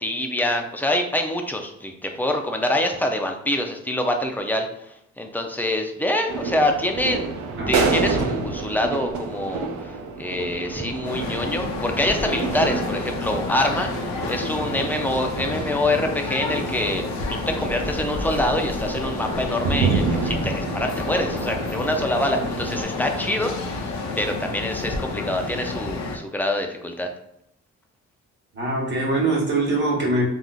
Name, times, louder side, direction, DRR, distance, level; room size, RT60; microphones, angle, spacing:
voice 1, 0.0-7.3 7.7-9.9 10.2-13.9 14.3-27.1, left 1 dB, 5° left, 4 dB, 0.4 m, -25 dB
sound 1, 6.3-22.8, right 4 dB, 75° right, 0.6 m, -29 dB
sound 2, 11.0-26.2, left 3 dB, 70° left, 0.6 m, -30 dB
voice 2, 28.5-30.2, right 2 dB, 35° right, -2 dB, 1.3 m, -23 dB
3.5 x 2.5 x 2.3 m, 0.79 s
cardioid pair, 90°, 30 cm